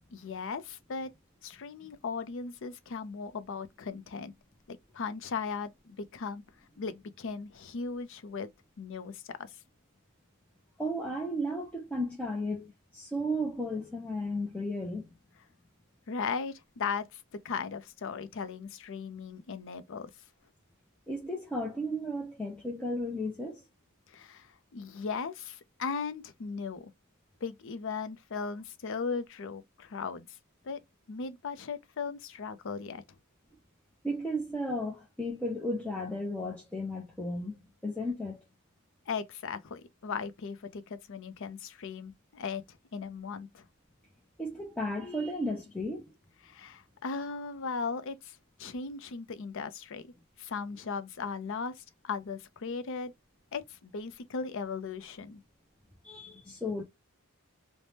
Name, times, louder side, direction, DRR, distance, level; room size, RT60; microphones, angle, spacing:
voice 1, 0.1-1.1 1.4-4.3 4.7-6.4 6.8-8.5 8.8-9.5 16.1-20.1 24.1-26.9 27.4-30.4 30.6-30.8 31.1-33.0 39.1-42.6 42.9-43.6 46.4-50.1 50.4-53.1 53.5-55.4, left 5 dB, 60° left, 0.5 m, -37 dB
voice 2, 10.8-15.1 21.1-23.6 34.0-38.4 44.4-46.0 56.0-56.8, equal, 5° left, 0.5 m, -34 dB
3.3 x 2.1 x 2.7 m
head